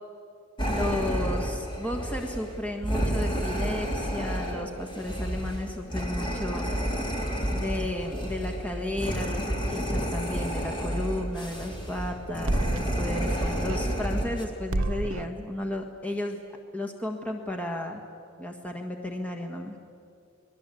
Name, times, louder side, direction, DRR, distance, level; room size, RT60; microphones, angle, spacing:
sound 1, 0.6-14.4, equal, 25° left, 3.2 m, -30 dB
voice 1, 0.6-6.7 7.5-16.4 16.7-18.0 18.4-19.8, left 1 dB, 5° left, 1 dB, 1.5 m, -33 dB
sound 2, 12.2-14.4 14.7-15.4, right 2 dB, 65° right, 0.9 m, -32 dB
28.5 x 21.0 x 8.4 m, 2.5 s
head